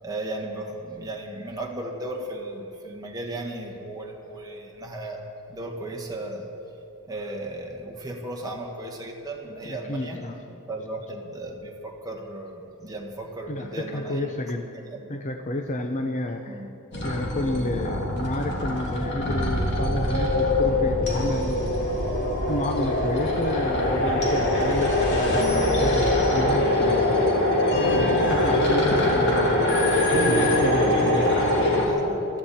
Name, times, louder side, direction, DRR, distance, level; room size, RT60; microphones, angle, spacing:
voice 1, 0.0-5.2 5.5-6.5 7.1-10.2 10.7-14.3 14.9-15.1 16.5-16.7 31.8-32.2, right 2 dB, 15° right, -1 dB, 1.6 m, -35 dB
voice 2, 9.6-10.4 13.5-14.7 15.1-16.6 17.0-21.8 22.5-27.3 27.9-29.7 30.1-31.5, left 1 dB, 35° left, 4 dB, 0.7 m, -30 dB
sound 1, 16.9-31.9, left 1 dB, 50° left, 2.9 m, -23 dB
22.5 x 14.0 x 4.3 m, 2.8 s
head